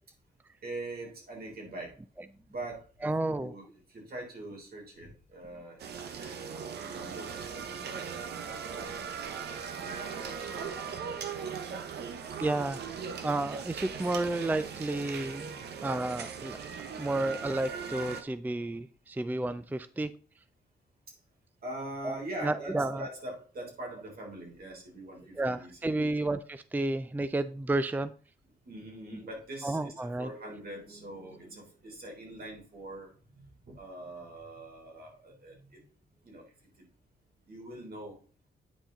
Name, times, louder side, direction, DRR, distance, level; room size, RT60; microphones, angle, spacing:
voice 1, 0.6-2.0 2.5-5.8 6.2-9.1 9.8-11.1 11.5-11.7 11.9-12.5 13.9-14.1 15.5-15.7 16.8-17.0 21.1-21.2 21.6-26.1 28.6-35.8 36.2-36.4 36.8-36.9 37.5-38.2, right 1 dB, 65° right, 0 dB, 3.5 m, -44 dB
voice 2, 3.0-3.5 12.4-12.8 13.2-16.6 17.0-20.1 22.0-23.1 25.4-28.1 29.6-30.3, right 2 dB, 10° right, 13 dB, 0.4 m, -31 dB
sound 1, 5.8-18.2, right 6 dB, 85° right, 0.9 m, -39 dB
8.8 x 4.9 x 3.8 m, 0.38 s
cardioid pair, 65°, 17 cm